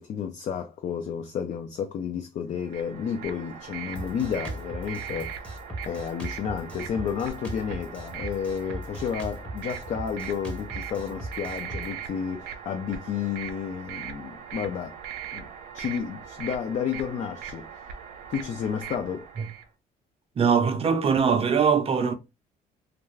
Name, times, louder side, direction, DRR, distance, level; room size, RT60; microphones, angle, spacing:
voice 1, 0.0-5.4 5.8-15.0 15.3-15.5 15.7-17.7 18.3-19.3, left 7 dB, 45° left, 0.4 m, -31 dB
sound 1, 2.6-19.7, right 8 dB, 90° right, 0.6 m, -40 dB
Drum kit, 4.0-11.9, right 1 dB, 5° left, 0.7 m, -38 dB
voice 2, 20.4-22.1, right 6 dB, 35° right, 0.5 m, -22 dB
2.4 x 2.3 x 3.1 m
cardioid pair, 110°, 17 cm